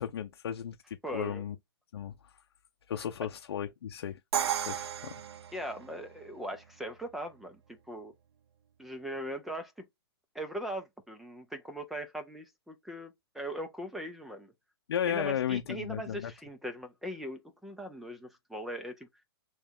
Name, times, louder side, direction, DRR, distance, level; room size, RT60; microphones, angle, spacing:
voice 1, 0.0-1.6 1.9-2.3 2.9-4.2 4.6-5.1 14.9-16.3, left 9 dB, 75° left, 0.6 m, -34 dB
voice 2, 1.0-1.4 5.5-8.1 8.8-9.9 10.3-14.5 15.1-19.1, right 1 dB, ahead, 0.5 m, -40 dB
Crash cymbal, 4.3-6.2, right 9 dB, 80° right, 0.5 m, -34 dB
3.3 x 2.9 x 3.6 m
hypercardioid pair, 160°, 13 cm